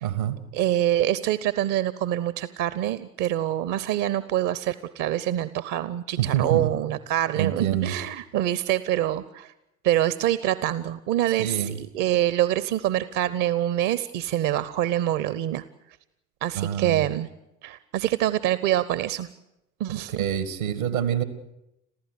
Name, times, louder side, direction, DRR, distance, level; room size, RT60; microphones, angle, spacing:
voice 1, 0.0-0.4 6.2-6.7 7.4-7.9 11.4-11.8 16.5-17.1 19.9-21.2, right 10 dB, 75° right, 12 dB, 2.4 m, -26 dB
voice 2, 0.5-9.5 9.8-15.6 16.4-17.3 17.6-19.3 19.8-20.2, right 12 dB, 50° right, 16 dB, 0.9 m, -25 dB
27.5 x 15.0 x 8.4 m, 0.87 s
figure-of-eight pair, 70°, 41 cm